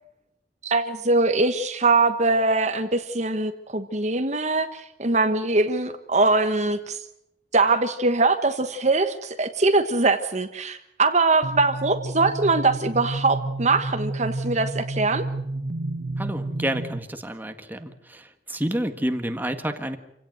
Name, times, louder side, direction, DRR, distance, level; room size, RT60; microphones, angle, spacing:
voice 1, 0.6-7.0 7.5-15.2, right 3 dB, 40° right, 8 dB, 1.3 m, -22 dB
Kids Setting, 11.4-17.0, right 2 dB, 65° right, 1.5 m, -31 dB
voice 2, 16.2-20.0, right 1 dB, 10° right, 7 dB, 1.7 m, -29 dB
27.5 x 17.0 x 7.8 m, 0.82 s
head